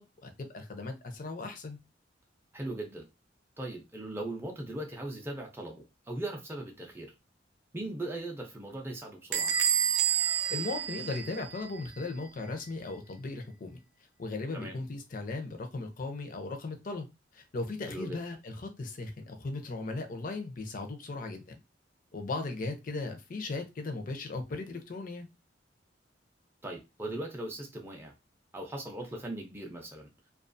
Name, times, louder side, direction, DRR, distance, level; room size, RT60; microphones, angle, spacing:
voice 1, 0.0-1.8 10.5-13.8 14.2-17.1 17.3-21.5 22.1-25.3, left 3 dB, 50° left, 0.5 m, -37 dB
voice 2, 2.5-3.1 3.6-7.1 7.7-9.5 14.5-14.8 17.9-18.2 26.6-28.1 28.5-30.1, right 1 dB, 15° right, 0.5 m, -39 dB
Bell / Squeak, 9.3-11.8, right 9 dB, 85° right, 0.4 m, -29 dB
2.3 x 2.3 x 2.5 m
head